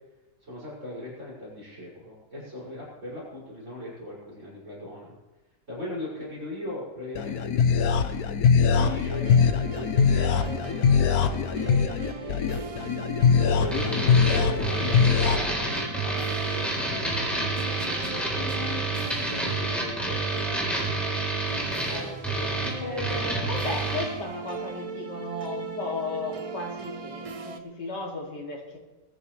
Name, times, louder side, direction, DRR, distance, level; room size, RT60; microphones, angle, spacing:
voice 1, 0.4-5.1 5.7-8.3 8.7-12.8 13.2-17.5 18.1-20.7 21.5-22.7, left 1 dB, 45° right, -7 dB, 6.6 m, -39 dB
sound 1, 7.2-15.4, left 6 dB, 65° left, 1.3 m, -22 dB
sound 2, 8.7-27.6, right 4 dB, 65° right, 0.3 m, -39 dB
sound 3, 13.7-24.1, right 2 dB, ahead, 3.6 m, -29 dB
voice 2, 22.6-28.8, left 2 dB, 80° left, -1 dB, 3.2 m, -35 dB
20.5 x 13.5 x 3.3 m, 1.1 s
omnidirectional pair, 1.8 m